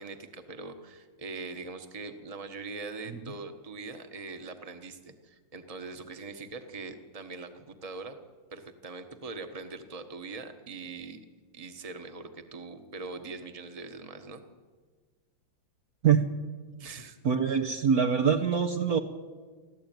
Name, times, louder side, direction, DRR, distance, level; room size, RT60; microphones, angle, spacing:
voice 1, 0.0-8.2 8.5-11.2 11.5-14.4 16.8-17.2 17.5-17.6, right 3 dB, 20° right, 7 dB, 1.3 m, -42 dB
voice 2, 17.2-19.0, right 7 dB, 55° right, 3 dB, 1.4 m, -24 dB
25.0 x 15.0 x 9.3 m, 1.5 s
omnidirectional pair, 2.2 m